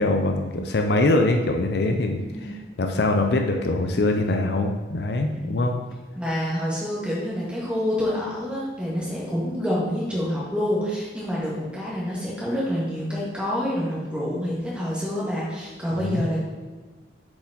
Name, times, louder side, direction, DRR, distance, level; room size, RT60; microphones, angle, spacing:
voice 1, 0.0-5.8 16.0-16.3, left 2 dB, 55° left, 4 dB, 0.5 m, -23 dB
voice 2, 5.3-5.7 6.1-16.4, equal, 5° right, -6 dB, 1.6 m, -27 dB
6.9 x 5.0 x 3.9 m, 1.2 s
head